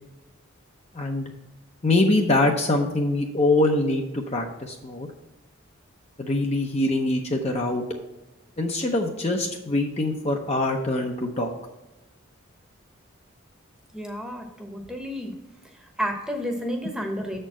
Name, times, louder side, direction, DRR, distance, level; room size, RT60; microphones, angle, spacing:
voice 1, 1.8-5.1 6.2-7.8 8.6-11.5, left 2 dB, 30° left, 2 dB, 0.6 m, -24 dB
voice 2, 13.9-15.3 15.6-17.4, equal, 5° right, 2 dB, 0.9 m, -31 dB
7.0 x 4.4 x 6.1 m, 1.0 s
head